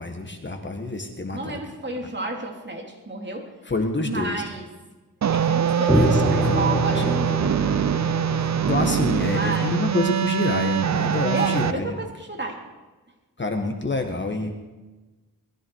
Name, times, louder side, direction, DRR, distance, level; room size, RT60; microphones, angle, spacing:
voice 1, 0.0-1.6 3.7-4.4 6.1-7.0 8.7-12.0 13.4-14.5, left 2 dB, 30° left, 4 dB, 1.7 m, -27 dB
voice 2, 1.3-3.5 4.0-4.7 5.3-6.0 6.3-7.4 9.3-9.8 11.3-12.6, right 3 dB, 30° right, 1 dB, 3.0 m, -31 dB
sound 1, 5.2-11.7, right 8 dB, 50° right, 0.6 m, -23 dB
sound 2, 5.9-10.5, left 1 dB, ahead, 1.3 m, -26 dB
21.0 x 14.0 x 4.8 m, 1.2 s
wide cardioid pair, 95°, 36 cm